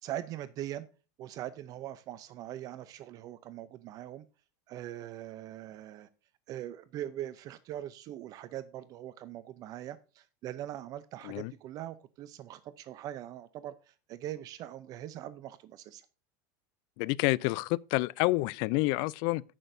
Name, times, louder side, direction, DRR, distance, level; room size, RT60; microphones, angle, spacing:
voice 1, 0.0-0.9 1.2-4.2 4.7-6.1 6.5-16.1, right 12 dB, 40° right, 0.6 m, -41 dB
voice 2, 17.0-19.4, left 21 dB, 55° left, 0.4 m, -28 dB
16.0 x 6.1 x 2.7 m
supercardioid pair, 140°, 9 cm